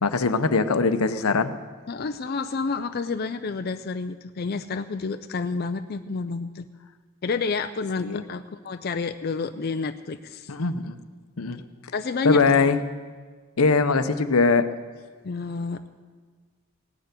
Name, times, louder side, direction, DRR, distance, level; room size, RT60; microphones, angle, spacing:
voice 1, 0.0-1.5 8.0-8.2 10.5-11.0 11.4-11.6 12.2-12.8 13.6-14.7, left 4 dB, 80° left, 12 dB, 0.8 m, -21 dB
voice 2, 1.9-6.7 7.2-10.5 11.9-12.7 15.2-15.8, left 4 dB, 45° left, 9 dB, 0.4 m, -29 dB
17.0 x 6.7 x 9.5 m, 1.5 s
head